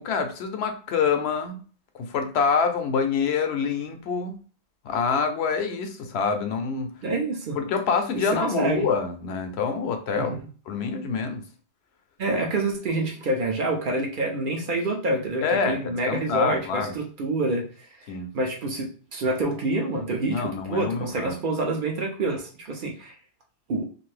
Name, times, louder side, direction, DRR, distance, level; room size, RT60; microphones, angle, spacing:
voice 1, 0.0-1.6 1.9-4.4 4.8-6.9 7.5-10.4 10.7-11.4 15.4-17.0 18.1-18.3 20.3-21.4, left 5 dB, 75° left, 6 dB, 0.8 m, -26 dB
voice 2, 7.0-7.6 8.4-8.9 10.1-10.3 12.2-17.7 18.1-23.1 23.7-23.8, right 2 dB, 55° right, 1 dB, 0.7 m, -27 dB
2.6 x 2.5 x 3.2 m, 0.39 s
omnidirectional pair, 1.1 m